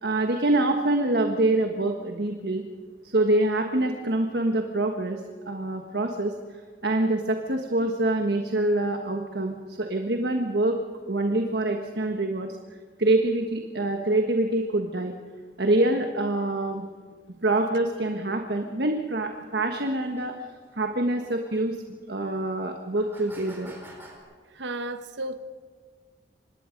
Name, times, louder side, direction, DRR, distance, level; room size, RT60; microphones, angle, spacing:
voice 1, 0.0-2.6 3.0-10.8 11.1-12.6 13.0-15.1 15.6-16.8 17.4-20.3 20.7-21.8 22.1-23.7, right 2 dB, 65° right, 1.4 m, -25 dB
sound 1, 18.5-18.6 19.1-19.2 20.2-20.3 21.5-21.6 22.0-22.1 22.7-24.2, right 1 dB, 15° right, 4.8 m, -47 dB
voice 2, 24.5-25.4, right 2 dB, 85° right, 1.1 m, -33 dB
26.0 x 20.0 x 5.3 m
head